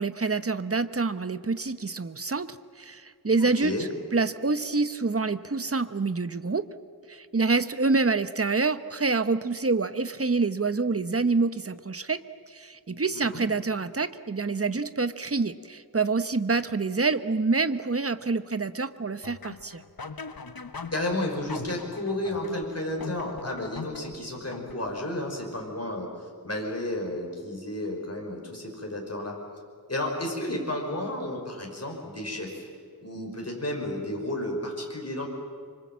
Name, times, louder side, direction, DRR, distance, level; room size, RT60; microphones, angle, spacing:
voice 1, 0.0-3.7 4.1-6.7 7.1-19.8, right 4 dB, 35° right, 12 dB, 1.0 m, -27 dB
voice 2, 3.4-3.9 13.1-13.4 20.9-26.1 26.4-29.4 29.9-32.7 33.0-35.3, left 1 dB, 40° left, 0 dB, 5.6 m, -32 dB
sound 1, 19.2-25.1, left 4 dB, 60° left, 1.2 m, -41 dB
25.5 x 25.0 x 7.5 m, 2.2 s
wide cardioid pair, 60°, 40 cm